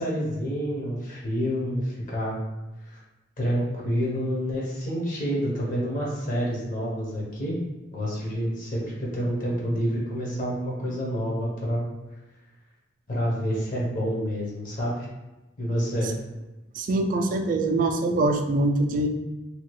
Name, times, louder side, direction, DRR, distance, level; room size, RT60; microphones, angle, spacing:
voice 1, 0.0-2.4 2.8-3.0 3.4-7.6 7.9-11.8 13.1-15.1 15.6-16.1, equal, 45° left, -4 dB, 0.8 m, -28 dB
voice 2, 16.8-19.1, right 2 dB, 45° right, 5 dB, 0.3 m, -23 dB
2.8 x 2.3 x 3.0 m, 1.0 s
head